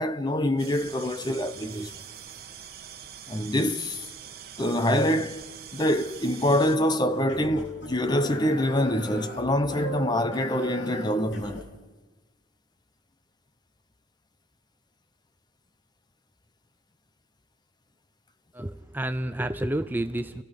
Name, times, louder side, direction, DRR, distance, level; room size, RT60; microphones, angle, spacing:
voice 1, 0.0-1.9 3.3-4.0 4.6-5.4 5.7-11.6, left 1 dB, 20° left, 0.8 m, -25 dB
sound 1, 0.6-6.8, right 8 dB, 50° right, 1.6 m, -44 dB
sound 2, 6.4-11.6, equal, 65° left, 3.6 m, -37 dB
voice 2, 18.5-20.4, right 1 dB, 10° right, 0.5 m, -30 dB
29.5 x 17.0 x 5.4 m
head